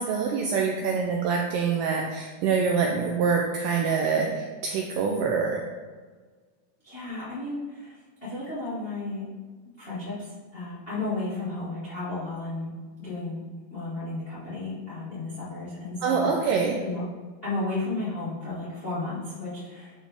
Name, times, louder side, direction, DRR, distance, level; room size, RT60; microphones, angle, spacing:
voice 1, 0.0-5.6 16.0-16.8, right 5 dB, 80° right, 0 dB, 1.9 m, -25 dB
voice 2, 6.8-9.3 9.8-12.7 13.0-13.4 13.7-16.3 16.8-17.0 17.4-19.9, left 2 dB, 25° left, -10 dB, 1.3 m, -33 dB
9.9 x 4.1 x 3.6 m, 1.4 s
omnidirectional pair, 4.3 m